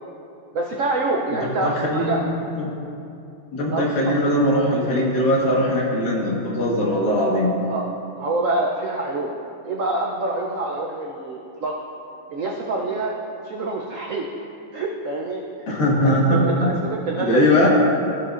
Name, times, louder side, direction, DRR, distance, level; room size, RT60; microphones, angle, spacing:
voice 1, 0.5-2.2 3.7-4.1 7.6-7.8 8.1-9.3 9.6-11.8 12.3-13.1 13.4-14.3 14.7-15.7 16.0-17.7, right 2 dB, 85° right, -1 dB, 0.7 m, -26 dB
voice 2, 1.4-2.3 2.6-2.7 3.5-7.5 15.7-16.7 17.2-17.7, equal, 55° left, -3 dB, 2.0 m, -20 dB
15.0 x 6.6 x 2.5 m, 2.7 s
omnidirectional pair, 2.2 m